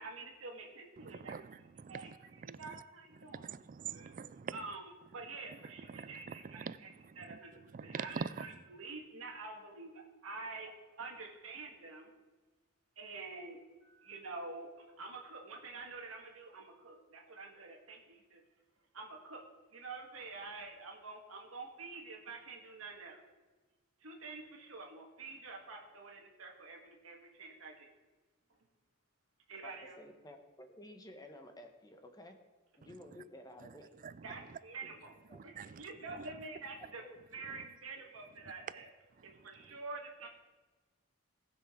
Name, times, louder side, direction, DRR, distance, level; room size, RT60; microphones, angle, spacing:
voice 1, 0.0-1.3 1.9-2.1 2.4-3.5 3.9-4.1 4.5-6.9 7.1-12.1 13.0-18.4 18.9-19.4 19.7-23.2 24.0-27.9 29.5-30.0 34.2-35.1 35.4-37.0 37.3-38.9 39.2-40.3, right 3 dB, 80° right, 1.6 m, -47 dB
voice 2, 1.0-2.2 2.5-2.8 3.2-4.6 5.9-6.8 7.0-7.4 7.7-8.5 33.6-33.7 34.0-34.4 35.3-35.8 36.2-36.3 37.5-37.6, right 6 dB, 40° right, 0.4 m, -44 dB
voice 3, 29.6-32.4 32.8-33.9 35.3-35.5 36.8-37.4, left 1 dB, 20° left, 1.0 m, -53 dB
18.5 x 6.3 x 3.7 m
head